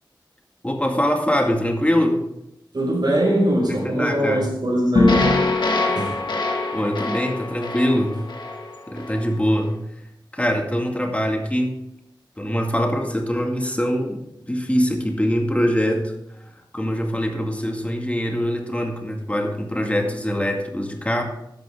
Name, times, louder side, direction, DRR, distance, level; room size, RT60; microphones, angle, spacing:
voice 1, 0.6-2.2 3.7-4.5 6.7-8.2 8.9-9.8 10.3-11.8 12.4-16.1 16.7-21.2, equal, 15° left, 2 dB, 2.1 m, -23 dB
voice 2, 2.7-5.3 5.8-6.2, equal, 60° right, -1 dB, 5.7 m, -21 dB
sound 1, 4.9-9.3, left 2 dB, 65° left, 2.2 m, -22 dB
13.5 x 10.5 x 3.7 m, 0.81 s
wide cardioid pair, 75°, 8 cm